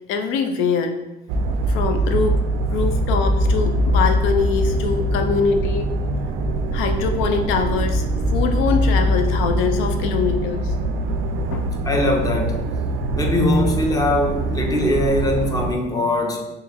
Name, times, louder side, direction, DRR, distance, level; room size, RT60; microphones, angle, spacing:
voice 1, 0.1-1.0 1.7-2.3 2.7-5.9 6.7-8.1 8.3-10.7 11.5-11.7, left 5 dB, 80° left, 6 dB, 0.5 m, -23 dB
sound 1, 1.3-15.8, right 1 dB, 75° right, 0.4 m, -22 dB
voice 2, 11.9-12.6 13.2-16.4, left 1 dB, 20° left, 1 dB, 0.5 m, -21 dB
3.7 x 3.3 x 2.9 m, 0.99 s
cardioid pair, 145°, 20 cm